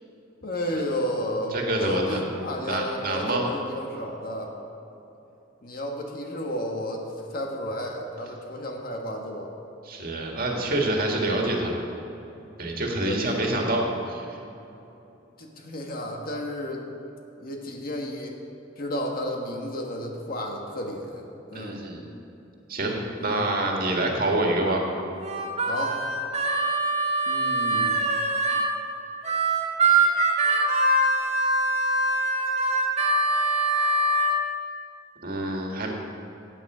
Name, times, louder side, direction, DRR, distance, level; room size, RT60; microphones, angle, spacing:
voice 1, 0.4-4.5 5.6-7.0 7.3-9.5 10.6-10.9 13.0-13.5 15.4-16.8 17.4-18.4 18.8-21.8 23.2-23.5 25.7-26.0 27.3-28.1, equal, 50° left, 1 dB, 1.6 m, -32 dB
voice 2, 1.5-2.2 2.6-3.5 9.8-11.8 12.6-13.8 14.1-14.3 21.5-22.1 22.7-24.8 35.2-35.9, right 1 dB, 50° right, 0 dB, 1.9 m, -26 dB
Harmonica, 25.2-28.7 29.2-34.3, right 2 dB, 35° right, 1.9 m, -23 dB
15.5 x 9.2 x 5.0 m, 3.0 s
head